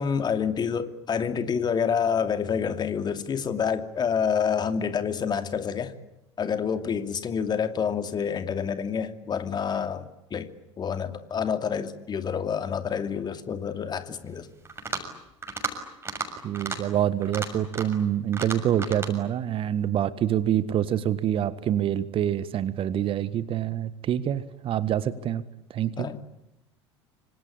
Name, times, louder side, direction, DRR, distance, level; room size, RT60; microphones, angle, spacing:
voice 1, 0.0-5.9 6.4-10.5 10.8-14.5 26.0-26.2, left 7 dB, 30° left, 2.6 m, -28 dB
sound 1, 14.7-15.1 15.4-15.7 16.0-16.3 16.5-16.8 17.2-18.0 18.3-19.1, right 4 dB, 15° right, 6.7 m, -33 dB
voice 2, 16.4-25.4 25.7-26.1, right 10 dB, 35° right, 1.6 m, -26 dB
27.0 x 26.0 x 8.6 m
figure-of-eight pair, 75°, 15 cm